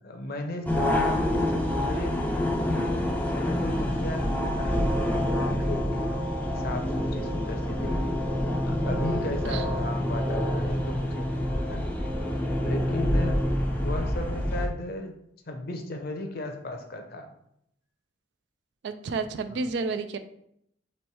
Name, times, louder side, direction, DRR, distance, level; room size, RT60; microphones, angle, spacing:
voice 1, 0.0-2.9 3.3-6.0 6.6-8.2 8.6-11.9 12.6-13.4 13.8-15.1 15.5-17.3 19.5-19.6, left 2 dB, 55° left, 5 dB, 0.6 m, -35 dB
sound 1, 0.7-14.7, left 1 dB, 10° left, 0.4 m, -27 dB
voice 2, 18.8-20.2, right 4 dB, 65° right, 10 dB, 0.3 m, -30 dB
3.1 x 3.0 x 4.6 m, 0.74 s
head